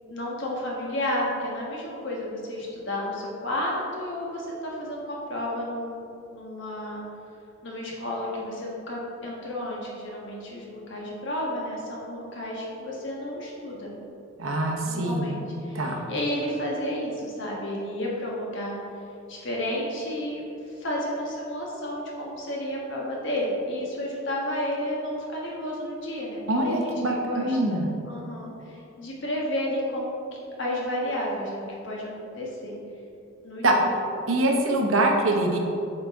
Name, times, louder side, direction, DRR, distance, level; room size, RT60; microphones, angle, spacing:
voice 1, 0.1-6.0 6.3-7.0 7.6-13.9 14.8-18.8 19.3-32.7 33.4-33.9, left 1 dB, 60° left, -3 dB, 1.3 m, -32 dB
voice 2, 14.4-15.3 15.7-16.0 26.5-27.9 33.6-33.8 34.3-35.6, right 1 dB, 70° right, 1 dB, 0.8 m, -24 dB
7.8 x 4.0 x 3.6 m, 2.7 s
head